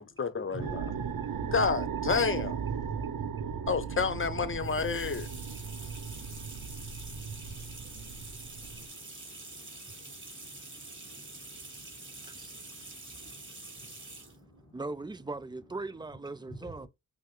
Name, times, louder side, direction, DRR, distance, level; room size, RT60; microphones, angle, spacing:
voice 1, 0.0-0.9 1.5-2.6 3.7-5.3, left 5 dB, 35° left, 0.8 m, -29 dB
voice 2, 0.5-1.5 2.7-3.7 5.1-14.8 16.4-16.9, right 2 dB, 10° left, 1.4 m, -51 dB
sound 1, 0.6-8.9, right 7 dB, 70° right, 0.8 m, -37 dB
sound 2, 4.6-14.4, right 2 dB, 35° right, 1.5 m, -46 dB
voice 3, 14.7-16.9, right 3 dB, 15° right, 0.4 m, -39 dB
5.5 x 2.1 x 3.0 m
cardioid pair, 60°, 35 cm